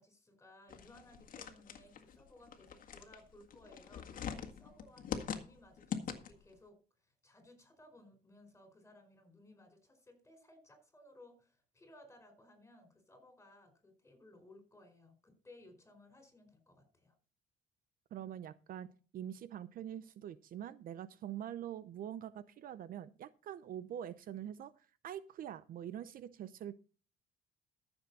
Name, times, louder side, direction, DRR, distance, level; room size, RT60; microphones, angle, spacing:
voice 1, 0.0-17.1, left 1 dB, 15° left, 6 dB, 4.7 m, -60 dB
sound 1, 0.7-6.5, left 7 dB, 55° left, 1.8 m, -43 dB
voice 2, 18.1-18.9 19.1-26.7, right 10 dB, 55° right, 15 dB, 0.7 m, -44 dB
14.0 x 7.1 x 4.1 m, 0.36 s
cardioid pair, 110°, 17 cm